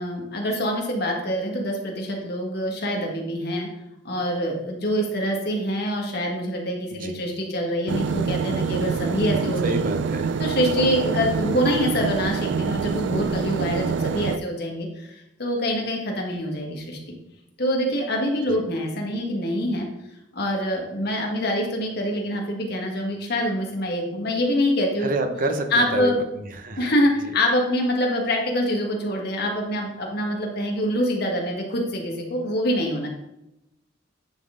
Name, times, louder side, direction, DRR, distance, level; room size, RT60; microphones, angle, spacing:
voice 1, 0.0-3.7 4.0-9.7 10.4-17.0 17.6-19.9 20.3-25.1 25.7-26.2 26.8-33.1, equal, 60° left, 0 dB, 1.5 m, -25 dB
sound 1, 7.9-14.4, right 5 dB, 65° right, 0.3 m, -26 dB
voice 2, 9.2-10.4 18.4-18.6 25.0-26.9 27.2-27.3, right 1 dB, 50° right, 6 dB, 0.7 m, -29 dB
9.6 x 4.2 x 3.7 m, 0.87 s
head